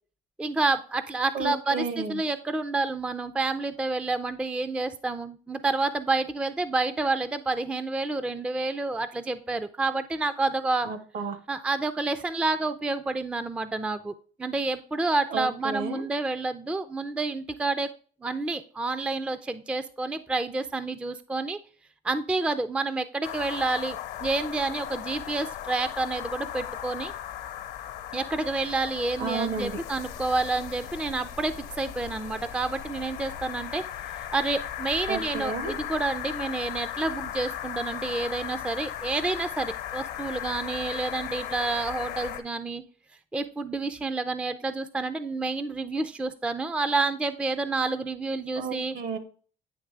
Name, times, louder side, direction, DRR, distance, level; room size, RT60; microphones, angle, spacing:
voice 1, 0.4-10.9 11.5-14.1 14.4-17.9 18.2-21.6 22.0-27.1 28.1-33.8 34.1-42.8 43.3-48.9, right 3 dB, 5° right, 11 dB, 0.3 m, -29 dB
voice 2, 1.3-2.2 10.8-11.4 15.3-16.0 29.2-29.8 35.1-35.7 48.6-49.2, right 4 dB, 65° right, 10 dB, 1.2 m, -32 dB
sound 1, 23.2-42.4, left 11 dB, 80° left, 0.9 m, -37 dB
9.3 x 3.2 x 3.3 m, 0.42 s
cardioid pair, 110°, 17 cm